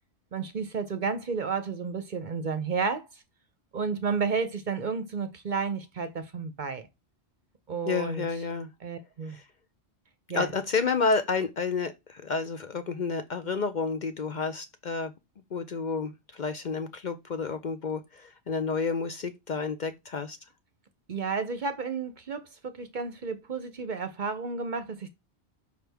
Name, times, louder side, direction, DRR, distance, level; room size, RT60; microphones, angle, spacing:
voice 1, 0.3-3.1 3.7-6.9 7.7-8.2 8.8-9.4 10.3-10.5 21.1-25.1, right 5 dB, 50° right, 0.7 m, -31 dB
voice 2, 7.9-8.7 9.3-9.5 10.3-15.1 15.5-20.4, left 4 dB, 50° left, 0.7 m, -30 dB
6.2 x 5.0 x 3.4 m
omnidirectional pair, 1.2 m